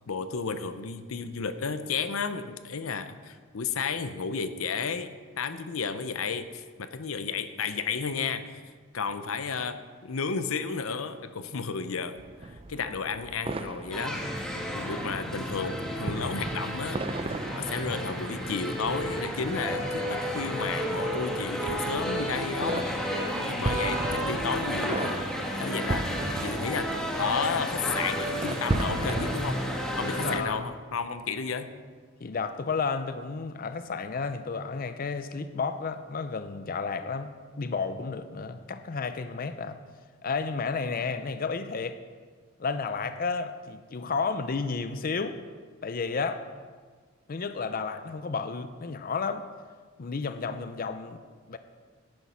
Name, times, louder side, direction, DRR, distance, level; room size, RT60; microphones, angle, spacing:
voice 1, 0.1-5.1 5.4-8.6 8.9-14.3 14.7-17.0 17.6-22.9 23.5-25.2 25.5-26.1 26.4-26.9 27.2-29.6 30.0-31.7, left 5 dB, 90° left, 11 dB, 0.7 m, -32 dB
sound 1, 12.2-30.7, right 2 dB, 30° right, 0.5 m, -37 dB
sound 2, 13.9-30.4, equal, 5° left, 1.5 m, -32 dB
sound 3, 16.1-21.1, right 2 dB, 50° right, 3.2 m, -49 dB
voice 2, 30.1-30.7 32.2-39.8 40.2-42.0 42.6-45.4 45.8-46.4 47.3-49.5 50.0-51.2 51.5-51.6, left 4 dB, 45° left, 10 dB, 0.5 m, -32 dB
11.0 x 9.3 x 5.7 m, 1.6 s
head